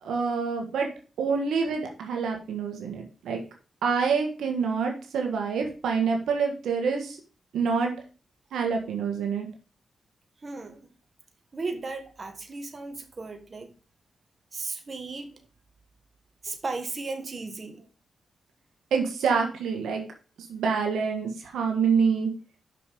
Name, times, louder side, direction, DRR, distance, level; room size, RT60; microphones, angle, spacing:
voice 1, 0.0-0.9 1.2-3.4 3.8-7.2 7.5-7.9 8.5-9.5 18.9-20.0 20.5-22.3, right 5 dB, 85° right, 1.4 m, -26 dB
voice 2, 10.4-10.8 11.5-13.7 14.5-15.3 16.4-17.8, right 3 dB, 45° right, 1.4 m, -35 dB
6.1 x 5.7 x 5.1 m
cardioid pair, 55°, 0 cm